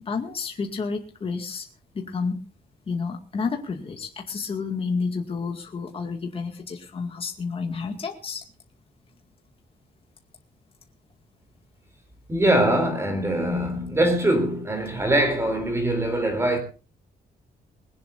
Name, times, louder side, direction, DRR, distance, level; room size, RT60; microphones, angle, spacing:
voice 1, 0.0-1.7 1.9-2.4 2.9-8.4, left 4 dB, 35° left, 2.1 m, -30 dB
voice 2, 12.3-16.6, right 1 dB, 15° right, 3.4 m, -22 dB
21.0 x 17.5 x 2.6 m
wide cardioid pair, 175°, 17 cm